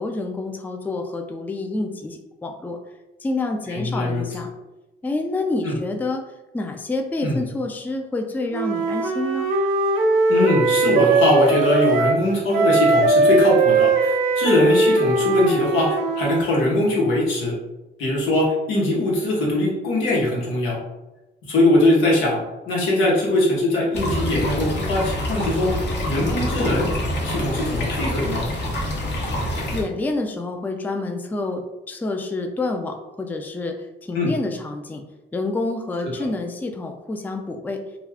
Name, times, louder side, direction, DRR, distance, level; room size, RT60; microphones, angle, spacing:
voice 1, 0.0-2.8 3.2-4.5 5.0-6.2 6.5-9.5 29.7-35.0 35.3-37.8, left 2 dB, 10° left, 4 dB, 0.3 m, -28 dB
voice 2, 3.7-4.2 5.6-5.8 7.2-7.4 10.3-17.5 18.0-20.8 21.5-25.7 26.1-26.9 27.2-28.4 34.1-34.4, left 1 dB, 90° left, -3 dB, 1.0 m, -21 dB
Wind instrument woodwind instrument, 8.5-12.2 12.5-16.5, right 3 dB, 85° right, 0.5 m, -19 dB
sound 1, 23.9-29.8, left 1 dB, 60° left, 0.8 m, -26 dB
2.3 x 2.3 x 3.4 m, 1.0 s
cardioid pair, 90°, 20 cm